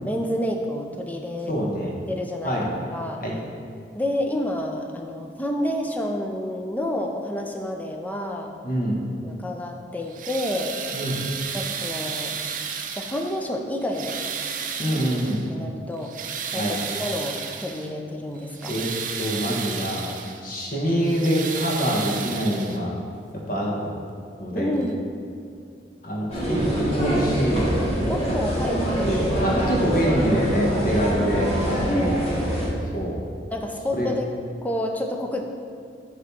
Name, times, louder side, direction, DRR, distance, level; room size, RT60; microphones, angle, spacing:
voice 1, 0.0-1.5 2.1-3.2 3.9-8.5 9.2-10.7 11.5-12.4 13.0-14.2 15.5-16.1 16.5-18.8 24.6-25.1 28.1-28.9 29.5-29.9 31.9-32.2 33.5-34.3 34.6-35.4, left 1 dB, 10° left, 2 dB, 0.5 m, -29 dB
voice 2, 1.5-2.0 2.4-2.7 3.2-3.4 8.6-9.0 10.9-11.2 14.8-15.5 16.5-16.7 18.7-18.9 19.2-20.1 20.4-22.9 23.3-23.9 24.4-24.8 26.0-28.2 29.0-32.1 32.9-33.2 33.9-34.1, equal, 50° left, -3 dB, 1.3 m, -25 dB
sound 1, 10.0-13.5 13.9-15.5 15.9-17.9 18.4-20.4 20.9-23.0 24.1-24.2 24.8-24.9, right 6 dB, 45° right, 0.5 m, -33 dB
sound 2, 26.3-32.7, right 1 dB, 35° left, 1.7 m, -24 dB
8.4 x 3.2 x 6.1 m, 2.3 s
head